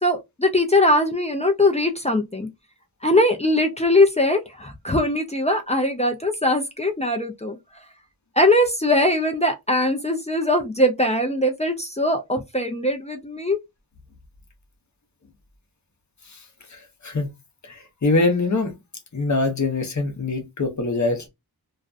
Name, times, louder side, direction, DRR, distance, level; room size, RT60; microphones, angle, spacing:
voice 1, 0.0-2.5 3.0-7.6 8.4-13.6, left 1 dB, 20° left, 0.4 m, -21 dB
voice 2, 16.7-17.3 17.7-18.7 19.1-21.3, left 3 dB, 45° left, 0.7 m, -23 dB
2.4 x 2.2 x 2.4 m
wide cardioid pair, 55°, 39 cm